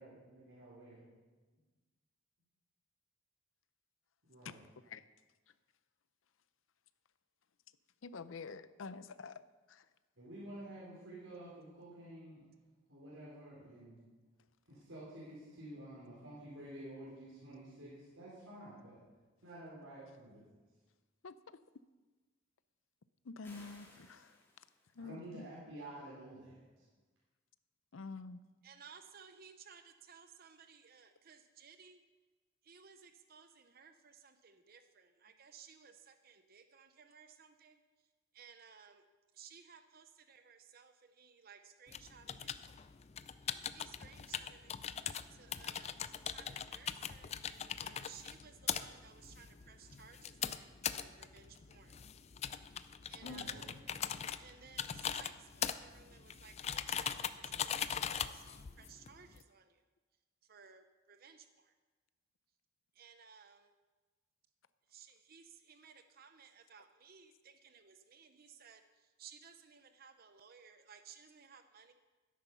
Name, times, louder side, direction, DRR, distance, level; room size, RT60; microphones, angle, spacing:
voice 1, 0.0-1.0 4.3-4.7 10.2-12.4 12.9-14.0 14.7-19.0 19.4-20.4 25.0-26.8 53.2-53.8, right 1 dB, 85° right, -8 dB, 4.4 m, -51 dB
voice 2, 8.0-9.4 21.2-21.3 23.3-24.3 25.0-25.5 27.9-28.4 53.2-53.4, left 4 dB, 85° left, 14 dB, 0.6 m, -47 dB
sound 1, 23.4-25.0, left 1 dB, 10° left, 2.6 m, -60 dB
voice 3, 28.6-32.0 32.6-37.8 38.3-39.0 39.3-42.6 43.7-44.8 45.3-45.9 46.2-52.0 53.1-53.7 54.4-59.8 60.5-61.7 63.0-63.7 64.9-68.8 69.2-71.9, right 6 dB, 50° right, 9 dB, 0.7 m, -58 dB
sound 2, 41.9-59.4, left 8 dB, 35° left, 0.4 m, -41 dB
13.0 x 10.0 x 5.6 m, 1.3 s
head